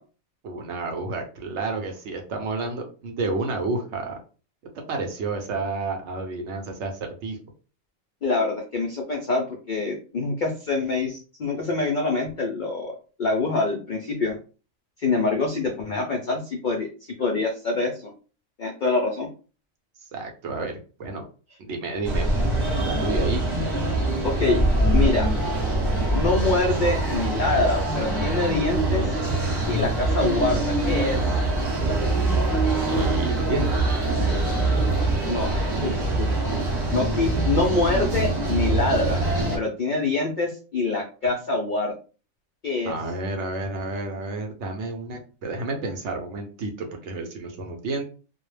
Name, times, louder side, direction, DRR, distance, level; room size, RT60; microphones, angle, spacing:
voice 1, 0.4-4.2 4.9-7.4 20.1-21.3 21.6-22.3 22.8-23.4 32.9-33.8 42.8-48.0, right 3 dB, 65° right, 3 dB, 0.8 m, -30 dB
voice 2, 8.2-14.4 15.0-18.1 18.6-19.3 24.2-24.6 24.9-25.3 26.1-29.2 29.7-31.3 35.2-36.3 36.9-39.3 39.5-41.9 42.6-42.9, left 3 dB, 70° left, 1 dB, 0.4 m, -25 dB
sound 1, 22.0-39.6, right 2 dB, 20° right, 1.0 m, -23 dB
2.3 x 2.0 x 3.1 m, 0.36 s
omnidirectional pair, 1.4 m